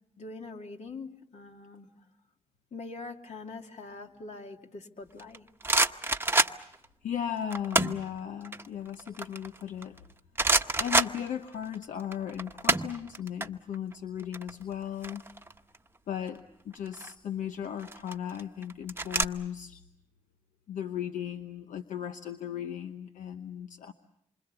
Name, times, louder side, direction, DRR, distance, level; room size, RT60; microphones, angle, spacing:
voice 1, 0.2-1.9 2.7-5.5, left 3 dB, 65° left, 3 dB, 2.6 m, -43 dB
sound 1, 5.2-6.9 7.5-8.1 8.4-10.0 10.4-11.8 12.0-13.5 13.7-13.9 14.2-15.8 16.7-17.1 17.8-19.2, right 2 dB, 20° right, 1.0 m, -27 dB
voice 2, 7.0-10.0 10.8-15.2 16.1-19.8 20.7-23.9, left 9 dB, 85° left, 7 dB, 1.0 m, -36 dB
27.0 x 25.0 x 6.9 m, 0.76 s
cardioid pair, 60°, 13 cm